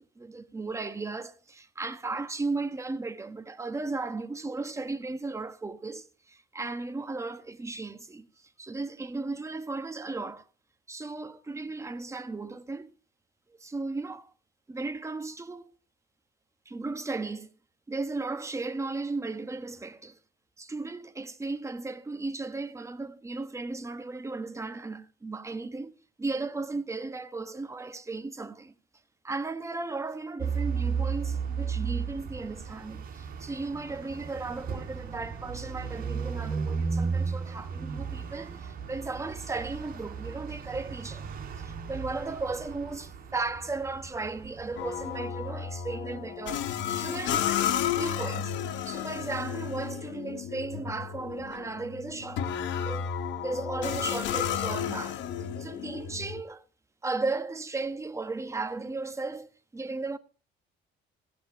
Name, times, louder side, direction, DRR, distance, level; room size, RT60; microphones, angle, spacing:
voice 1, 0.0-10.5 10.9-12.9 13.6-14.3 14.7-15.7 16.6-17.5 17.9-20.2 20.6-25.9 26.2-28.7 29.2-41.2 41.6-46.6 47.0-48.6 48.8-53.0 53.4-55.2 55.6-56.6 57.0-60.2, right 3 dB, 15° right, 1.3 m, -35 dB
sound 1, 30.4-45.2, right 5 dB, 50° right, 4.1 m, -35 dB
sound 2, 44.8-56.4, left 9 dB, 70° left, 1.4 m, -32 dB
16.0 x 8.3 x 7.4 m
cardioid pair, 130°, 20 cm